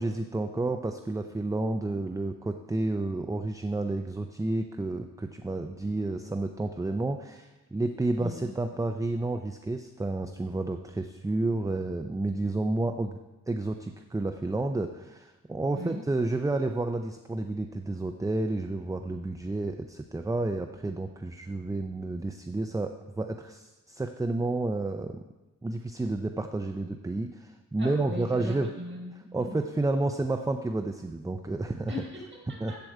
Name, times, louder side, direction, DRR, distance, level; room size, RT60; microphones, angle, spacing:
voice 1, 0.0-13.2 13.5-25.2 25.6-28.7 29.3-31.9 32.6-32.7, right 2 dB, 10° right, 6 dB, 0.4 m, -30 dB
voice 2, 27.8-29.5 31.9-32.8, left 1 dB, 35° right, -3 dB, 4.2 m, -39 dB
13.5 x 4.7 x 7.8 m, 1.1 s
wide cardioid pair, 135°, 33 cm